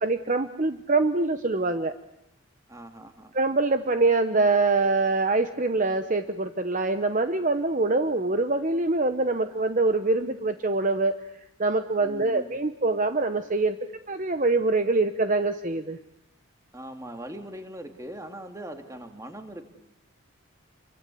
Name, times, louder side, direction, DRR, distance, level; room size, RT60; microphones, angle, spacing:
voice 1, 0.0-1.9 3.3-11.2 11.6-13.8 14.1-16.0, right 3 dB, 35° right, 9 dB, 1.0 m, -24 dB
voice 2, 2.7-3.3 12.0-12.5 16.7-19.6, right 1 dB, 15° right, 6 dB, 2.4 m, -40 dB
28.5 x 24.0 x 8.5 m, 0.81 s
head